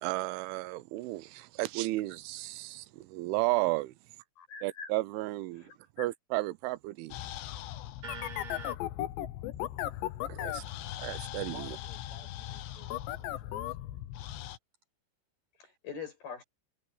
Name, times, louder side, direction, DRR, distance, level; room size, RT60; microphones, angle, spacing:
voice 1, 0.0-3.9 4.6-5.7 6.0-7.2 10.3-10.7 11.0-11.8, right 20 dB, 85° right, 3.2 m, -33 dB
voice 2, 4.4-4.9 5.6-6.1 13.4-13.5 15.6-16.4, left 5 dB, 55° left, 8.9 m, -44 dB
sound 1, 7.1-14.6, left 13 dB, 75° left, 3.3 m, -38 dB
voice 3, 8.0-8.8 11.5-12.9 13.2-13.9, right 3 dB, 35° right, 7.9 m, -48 dB
omnidirectional pair, 5.4 m